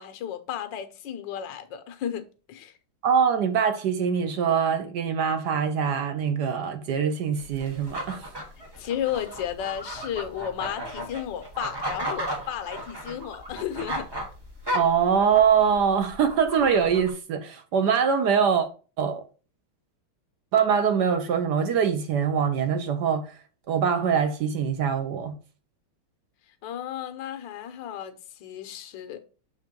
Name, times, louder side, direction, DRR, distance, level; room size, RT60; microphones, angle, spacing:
voice 1, 0.0-2.8 8.8-14.1 26.6-29.2, left 10 dB, 70° left, 1.4 m, -33 dB
voice 2, 3.0-8.3 14.7-18.7 19.0-19.2 20.5-23.4 23.7-25.4, right 7 dB, 65° right, 1.3 m, -23 dB
sound 1, 7.4-17.1, equal, 20° right, 0.7 m, -35 dB
6.5 x 3.5 x 5.2 m
omnidirectional pair, 2.2 m